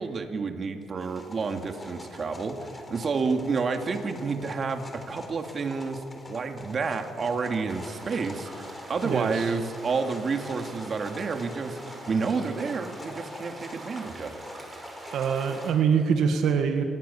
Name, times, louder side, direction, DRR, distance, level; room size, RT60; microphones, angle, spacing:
voice 1, 0.0-6.0 6.3-11.8 12.1-14.4, right 4 dB, 45° right, 5 dB, 2.6 m, -30 dB
sound 1, 1.0-15.7, left 2 dB, 25° left, 4.0 m, -45 dB
sound 2, 7.7-15.7, right 2 dB, 25° right, 6.1 m, -44 dB
voice 2, 9.0-9.6 15.1-16.8, right 6 dB, 75° right, 6 dB, 1.9 m, -24 dB
27.5 x 20.0 x 7.2 m, 2.3 s
cardioid pair, 90°, 0 cm